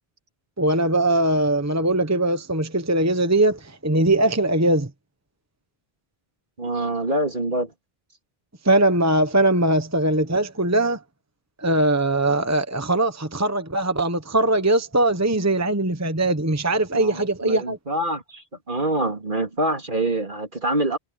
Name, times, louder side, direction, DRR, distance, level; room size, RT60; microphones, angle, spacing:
voice 1, 0.6-4.9 8.6-11.0 11.6-17.8, right 1 dB, 15° right, 1.1 m, -21 dB
voice 2, 6.6-7.7 16.9-21.0, right 1 dB, 55° right, 3.2 m, -25 dB
omnidirectional pair, 1.0 m